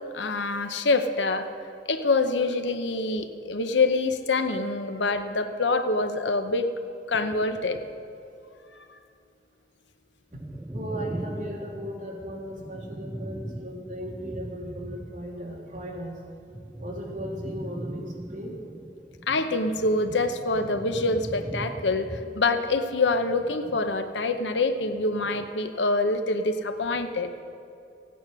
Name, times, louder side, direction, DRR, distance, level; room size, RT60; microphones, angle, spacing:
voice 1, 0.1-1.5 1.9-6.7 7.1-7.8 19.3-27.3, left 3 dB, 80° left, 8 dB, 0.8 m, -25 dB
sound 1, 10.3-15.6 15.9-24.5 24.8-25.5, right 1 dB, 10° right, 0.4 m, -40 dB
voice 2, 10.7-16.2 16.8-18.6, equal, 45° right, -3 dB, 2.6 m, -37 dB
15.5 x 9.1 x 6.2 m, 2.6 s
head